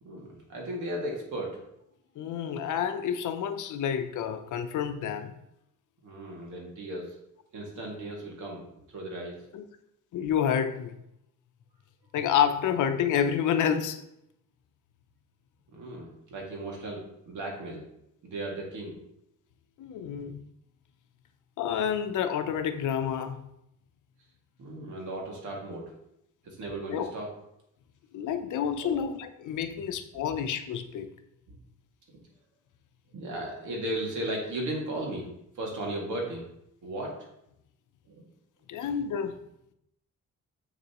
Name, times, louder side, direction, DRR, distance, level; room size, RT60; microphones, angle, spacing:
voice 1, 0.0-1.6 6.0-7.2 7.5-8.7 8.9-9.4 15.7-17.8 18.2-19.0 24.6-25.9 26.4-27.3 28.8-29.1 29.6-29.8 30.1-30.2 31.5-31.6 33.1-35.3 35.6-36.5 36.8-37.1 38.1-38.2, right 1 dB, 80° right, -1 dB, 2.2 m, -36 dB
voice 2, 2.2-5.3 9.5-9.6 10.1-11.0 12.1-14.0 19.8-20.4 21.6-23.4 26.9-27.1 28.1-31.1 38.7-39.4, left 8 dB, 85° left, 9 dB, 0.7 m, -29 dB
7.3 x 6.8 x 3.0 m, 0.80 s
wide cardioid pair, 150°, 30 cm